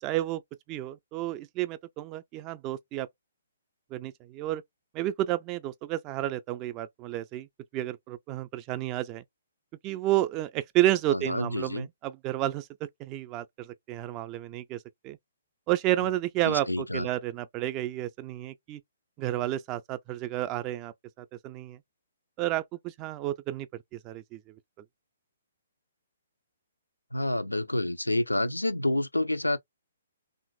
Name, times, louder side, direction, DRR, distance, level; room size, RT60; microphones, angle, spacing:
voice 1, 0.0-0.4 0.7-3.1 3.9-4.6 4.9-7.5 7.7-9.2 9.8-12.7 13.0-15.2 15.7-18.8 19.2-21.8 22.4-24.6, right 14 dB, 25° right, 0.3 m, -31 dB
voice 2, 11.1-11.9 16.4-17.1 27.1-29.6, left 1 dB, 85° left, 0.3 m, -28 dB
3.0 x 2.4 x 2.2 m
figure-of-eight pair, 125°, 0 cm